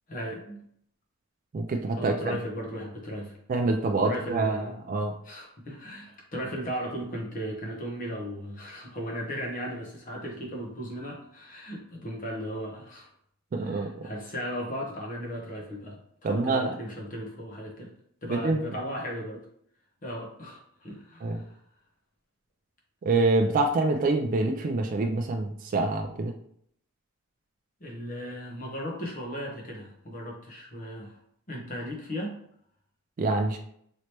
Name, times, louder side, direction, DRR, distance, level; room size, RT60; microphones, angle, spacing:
voice 1, 0.1-0.6 2.0-3.4 4.0-4.7 5.2-13.1 13.6-17.9 18.2-19.4 20.0-21.6 27.8-31.2 31.5-32.3, equal, 35° left, -1 dB, 0.9 m, -36 dB
voice 2, 1.5-2.4 3.5-5.1 13.5-14.1 16.2-16.7 18.3-18.6 21.2-21.4 23.0-26.3 33.2-33.6, right 3 dB, 40° right, 3 dB, 0.3 m, -26 dB
3.2 x 2.9 x 2.9 m, 0.68 s
head